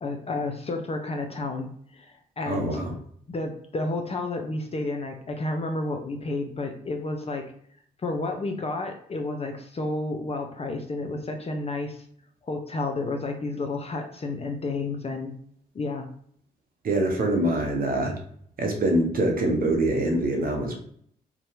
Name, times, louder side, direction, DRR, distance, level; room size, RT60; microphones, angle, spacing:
voice 1, 0.0-2.8 3.3-7.5 8.0-12.0 12.5-15.3 15.7-16.1, left 2 dB, 30° left, 4 dB, 0.5 m, -31 dB
voice 2, 2.5-2.9 16.8-18.1 18.6-20.8, right 1 dB, 45° right, 1 dB, 0.8 m, -24 dB
2.7 x 2.2 x 2.6 m, 0.63 s
hypercardioid pair, 40°, 21 cm